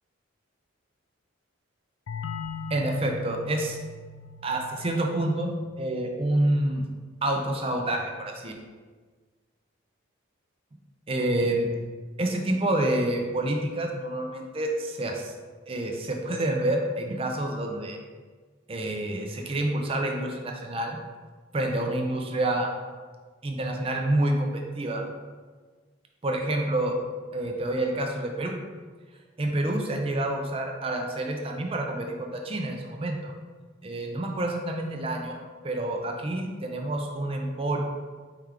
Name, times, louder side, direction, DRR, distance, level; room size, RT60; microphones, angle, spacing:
sound 1, 2.1-7.5, left 4 dB, 80° left, 0.3 m, -41 dB
voice 1, 2.7-3.8 4.4-5.5 5.8-6.8 7.2-8.5 11.1-11.7 12.2-15.3 15.7-18.0 18.7-21.0 21.5-22.7 23.4-25.0 26.2-27.0 27.3-28.6 29.4-33.3 33.8-37.8, right 1 dB, 30° right, 2 dB, 0.4 m, -28 dB
4.5 x 3.3 x 3.7 m, 1.4 s
head